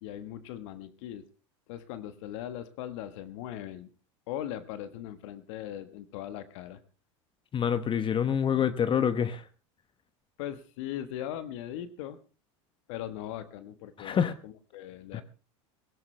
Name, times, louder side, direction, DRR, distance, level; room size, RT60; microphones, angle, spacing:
voice 1, 0.0-1.2 1.7-3.9 4.3-6.8 10.4-12.2 12.9-15.2, left 11 dB, 70° left, 1.3 m, -39 dB
voice 2, 7.5-9.4 14.0-14.3 15.1-15.2, left 8 dB, 30° left, 1.0 m, -26 dB
17.0 x 16.0 x 3.3 m
hypercardioid pair, 90°, 16 cm